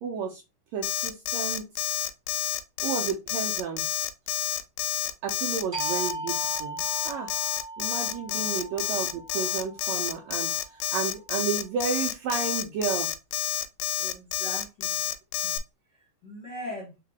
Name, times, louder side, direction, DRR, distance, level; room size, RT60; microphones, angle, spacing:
voice 1, 0.0-0.4 0.7-1.6 2.8-3.8 5.2-7.3 7.8-13.1, right 6 dB, 80° right, 1 dB, 1.6 m, -32 dB
Alarm, 0.8-15.6, left 13 dB, 80° left, 1.9 m, -29 dB
sound 1, 5.7-11.0, right 2 dB, 55° right, 0.7 m, -39 dB
voice 2, 8.2-8.5 14.0-15.1 15.4-15.6 16.2-16.9, equal, 60° left, -2 dB, 1.2 m, -40 dB
4.9 x 2.7 x 3.4 m, 0.25 s
omnidirectional pair, 3.7 m